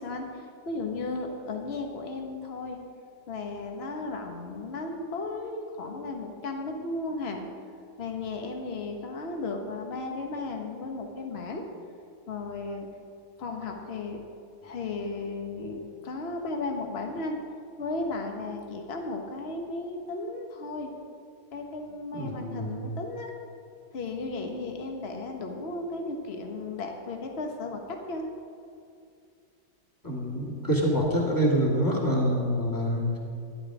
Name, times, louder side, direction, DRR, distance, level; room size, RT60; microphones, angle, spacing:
voice 1, 0.0-2.8 3.3-7.4 8.0-11.6 12.3-12.9 13.4-14.2 14.6-17.4 17.8-20.9 21.5-23.3 23.9-28.3, left 3 dB, 35° left, 3 dB, 1.3 m, -35 dB
voice 2, 22.1-22.9 30.0-33.2, equal, 10° left, -3 dB, 2.2 m, -26 dB
12.5 x 11.5 x 4.9 m, 2.4 s
omnidirectional pair, 2.1 m